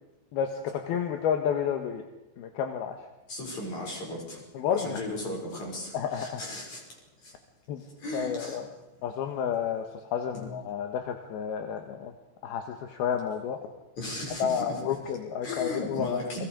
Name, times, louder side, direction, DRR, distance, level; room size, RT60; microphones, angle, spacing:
voice 1, 0.3-2.0 2.4-3.0 4.5-5.0 5.9-6.4 7.7-7.8 8.1-8.6 9.0-9.8 10.1-12.1 12.4-13.6 14.4-16.2, left 8 dB, 70° left, 5 dB, 2.9 m, -30 dB
voice 2, 3.3-4.4 4.7-7.4 8.0-8.7 10.3-10.5 14.0-15.1 15.4-16.5, left 1 dB, 40° left, -1 dB, 7.5 m, -36 dB
30.0 x 23.0 x 5.1 m, 0.99 s
omnidirectional pair, 5.3 m